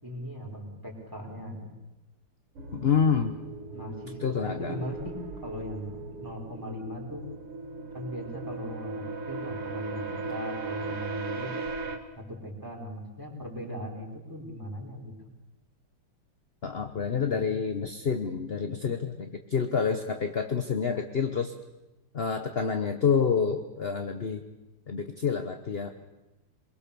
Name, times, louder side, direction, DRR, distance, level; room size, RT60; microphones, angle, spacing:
voice 1, 0.0-1.7 3.7-5.1 5.4-7.2 7.9-11.5 12.2-15.1, equal, 10° right, 0 dB, 4.7 m, -39 dB
sound 1, 2.6-12.0, right 3 dB, 80° right, 2.9 m, -38 dB
voice 2, 2.7-3.3 4.2-4.8 16.6-21.5 22.1-24.4 24.9-25.9, left 6 dB, 40° left, 6 dB, 0.9 m, -28 dB
24.0 x 22.5 x 7.0 m, 1.1 s
omnidirectional pair, 2.4 m